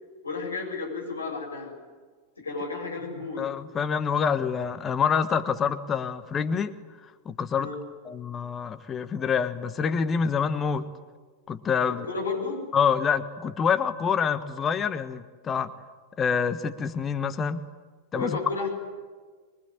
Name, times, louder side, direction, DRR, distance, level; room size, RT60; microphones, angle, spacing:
voice 1, 0.2-1.7 2.4-3.4 7.5-7.8 12.0-12.6 18.1-18.7, left 4 dB, 75° left, 0 dB, 7.2 m, -32 dB
voice 2, 3.4-6.7 7.2-7.7 8.0-10.8 11.5-12.1 12.7-15.7 16.2-17.6 18.1-18.4, left 6 dB, 25° left, 10 dB, 1.4 m, -26 dB
24.5 x 23.0 x 9.9 m, 1.5 s
figure-of-eight pair, 90°, 0 cm